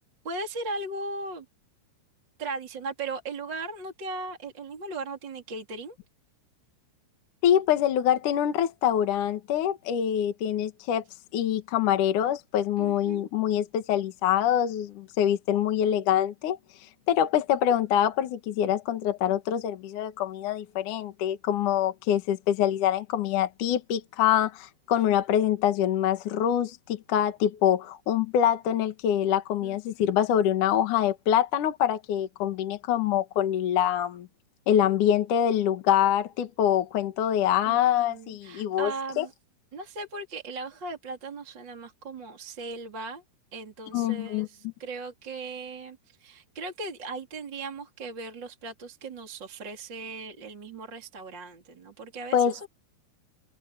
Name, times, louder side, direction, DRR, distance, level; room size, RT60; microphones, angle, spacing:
voice 1, 0.2-1.4 2.4-6.0 12.8-13.3 29.6-30.1 37.6-37.8 38.1-39.3 39.7-43.2 43.5-52.7, right 3 dB, 25° right, 3.2 m, -38 dB
voice 2, 7.4-11.0 11.3-16.6 17.1-34.3 34.7-39.3 43.9-44.5 52.3-52.5, left 10 dB, 60° left, 2.3 m, -25 dB
omnidirectional pair, 5.6 m